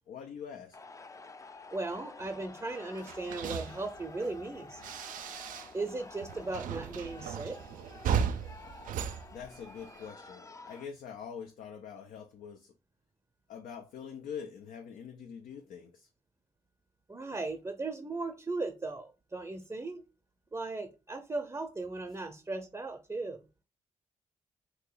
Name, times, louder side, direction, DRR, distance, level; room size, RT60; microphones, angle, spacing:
voice 1, 0.1-0.8 9.3-12.7 13.5-16.1, left 7 dB, 70° left, 0.5 m, -44 dB
sound 1, 0.7-10.9, left 3 dB, 20° left, 0.5 m, -50 dB
voice 2, 1.7-4.8 5.7-7.6 17.1-20.0 20.5-23.4, right 3 dB, 20° right, 0.6 m, -37 dB
sound 2, 3.0-5.9 6.2-10.1, right 7 dB, 70° right, 0.4 m, -36 dB
2.8 x 2.8 x 3.8 m
supercardioid pair, 45°, 14 cm